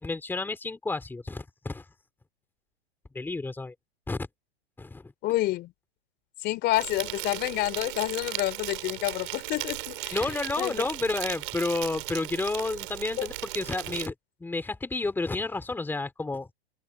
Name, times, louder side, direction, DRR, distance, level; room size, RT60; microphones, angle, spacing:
voice 1, 0.0-1.8 3.1-3.7 4.1-4.3 4.8-5.1 10.1-14.1 14.4-16.5, left 3 dB, 5° left, 3.4 m, -31 dB
voice 2, 5.2-5.7 6.4-10.2 10.6-10.7 13.2-13.3, left 16 dB, 30° left, 3.7 m, -28 dB
Insect, 6.7-14.1, right 17 dB, 55° right, 5.8 m, -36 dB
open air
hypercardioid pair, 120°, 31 cm